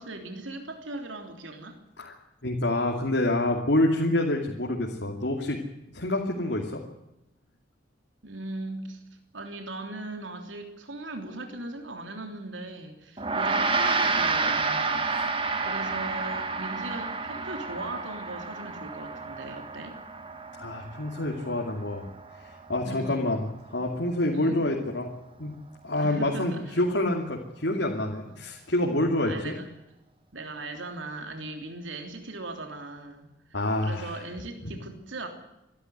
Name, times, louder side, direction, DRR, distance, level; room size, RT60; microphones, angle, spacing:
voice 1, 0.0-1.8 8.2-9.0 9.3-20.0 22.8-23.3 24.3-24.6 26.0-26.8 28.3-28.4 29.2-29.7 30.3-33.3 33.8-35.3, right 2 dB, 80° right, 5 dB, 3.3 m, -39 dB
voice 2, 2.4-5.6 5.9-6.8 20.5-22.1 22.7-25.1 25.4-25.6 25.8-29.6 33.5-34.1 34.6-34.7, left 1 dB, 65° left, 0 dB, 2.7 m, -27 dB
Gong, 13.2-22.7, right 4 dB, 25° right, 1.7 m, -30 dB
25.0 x 12.5 x 9.5 m, 0.89 s
head